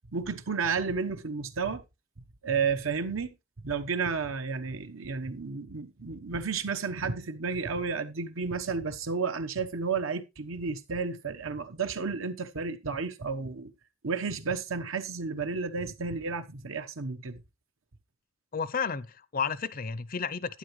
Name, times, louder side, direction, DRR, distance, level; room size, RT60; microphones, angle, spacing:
voice 1, 0.1-1.8 2.4-3.3 3.6-13.7 14.0-17.4, right 5 dB, 75° right, 1.0 m, -32 dB
voice 2, 18.5-20.6, left 6 dB, 45° left, 0.6 m, -32 dB
11.5 x 9.2 x 3.1 m
head